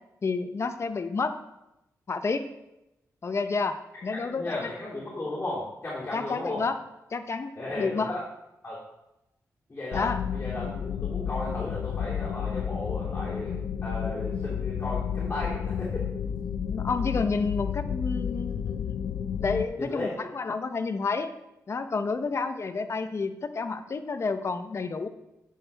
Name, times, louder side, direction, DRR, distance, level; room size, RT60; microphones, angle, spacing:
voice 1, 0.2-1.4 2.1-2.5 3.2-4.7 6.1-6.8 7.1-8.1 9.9-10.2 16.5-21.3 21.7-25.1, left 4 dB, 45° left, 9 dB, 0.7 m, -30 dB
voice 2, 4.1-6.6 7.5-8.2 8.6-8.8 9.7-13.6 13.8-16.0 19.7-20.2, left 2 dB, 30° left, -9 dB, 2.9 m, -35 dB
sound 1, 9.9-19.6, left 8 dB, 90° left, 0.4 m, -31 dB
9.5 x 6.4 x 3.4 m, 0.90 s
cardioid pair, 85°, 6 cm